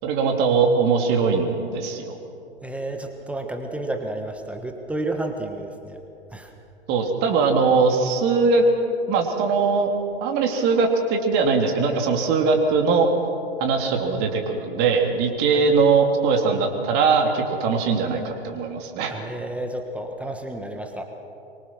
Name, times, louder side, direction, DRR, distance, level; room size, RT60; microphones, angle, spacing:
voice 1, 0.0-2.2 6.9-8.6 9.1-9.9 10.2-13.1 13.6-19.1, right 4 dB, 30° right, 3 dB, 3.0 m, -21 dB
voice 2, 2.6-6.0 6.3-6.5 19.1-21.0, right 1 dB, 5° right, 4 dB, 1.3 m, -31 dB
24.0 x 24.0 x 6.2 m, 2.7 s
figure-of-eight pair, 120°, 34 cm